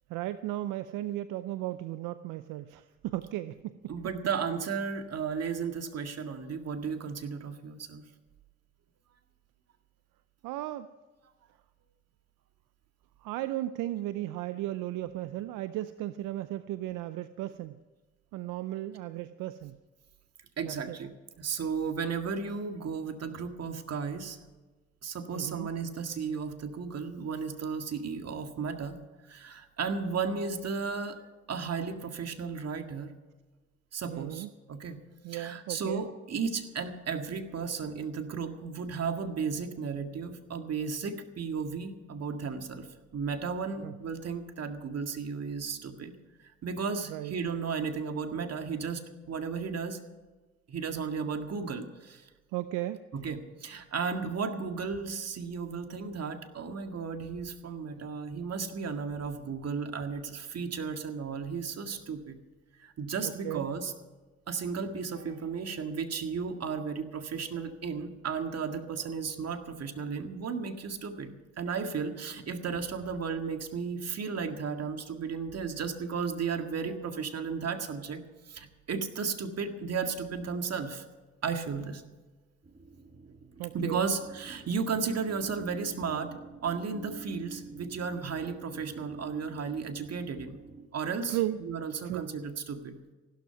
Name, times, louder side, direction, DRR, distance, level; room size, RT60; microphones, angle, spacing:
voice 1, 0.1-3.9 10.4-10.9 13.2-17.8 18.3-19.8 20.6-21.0 25.3-25.7 34.1-34.5 35.2-36.0 43.8-43.9 47.1-47.3 52.5-53.0 63.2-63.7 83.6-84.1 91.3-91.6 92.0-92.3, right 15 dB, 80° right, 13 dB, 0.6 m, -35 dB
voice 2, 3.9-8.0 20.6-24.4 25.0-29.0 29.3-31.2 31.5-33.1 33.9-35.0 35.3-42.9 43.1-46.1 46.4-50.0 50.7-52.3 53.1-62.4 62.8-63.9 64.5-81.0 81.4-82.0 83.7-86.3 86.6-90.6 90.9-93.0, right 5 dB, 50° right, 6 dB, 1.9 m, -34 dB
sound 1, 82.6-90.9, right 4 dB, 30° right, 2.0 m, -48 dB
16.0 x 12.5 x 5.8 m, 1.2 s
supercardioid pair, 60°, 32 cm